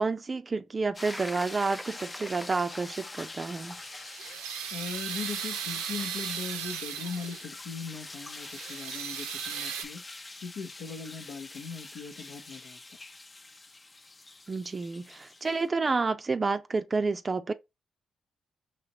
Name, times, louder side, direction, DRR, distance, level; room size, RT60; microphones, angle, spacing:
voice 1, 0.0-3.8 14.5-17.5, right 4 dB, 35° right, 0.4 m, -29 dB
sound 1, 0.9-15.7, left 2 dB, 30° left, 0.6 m, -45 dB
sound 2, 1.1-2.6, equal, ahead, 0.8 m, -43 dB
sound 3, 3.6-7.6 8.1-9.8, right 9 dB, 85° right, 0.6 m, -37 dB
voice 2, 4.7-10.0 10.4-12.8, left 5 dB, 70° left, 0.7 m, -39 dB
5.0 x 3.0 x 2.8 m
hypercardioid pair, 45°, 0 cm